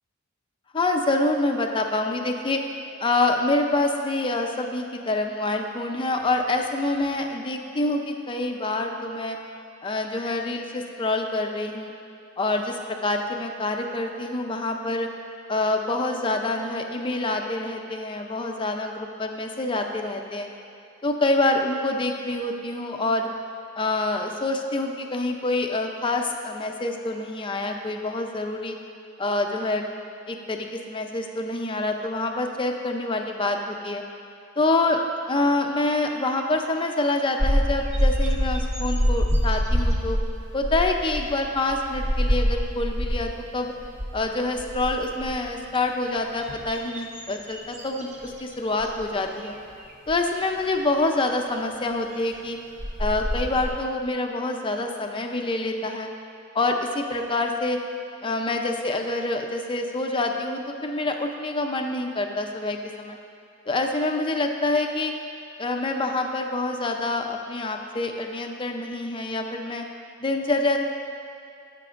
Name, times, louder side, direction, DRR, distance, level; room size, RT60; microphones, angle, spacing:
voice 1, 0.7-2.6 3.0-9.4 9.8-11.9 12.4-15.1 15.5-20.5 21.0-23.3 23.8-28.8 29.2-29.8 30.3-34.0 34.6-35.0 35.3-40.2 40.5-43.7 44.1-49.5 50.1-52.6 53.0-56.1 56.5-57.8 58.2-63.2 63.7-65.1 65.6-69.8 70.2-70.8, left 2 dB, 25° left, 3 dB, 0.6 m, -26 dB
sound 1, 37.4-43.5 43.8-44.2 44.5-45.5 46.1-48.4 48.8-49.0 50.1-50.2 52.3-52.4 52.8-53.7, equal, 35° right, 0.8 m, -25 dB
17.5 x 5.9 x 2.5 m, 2.6 s
head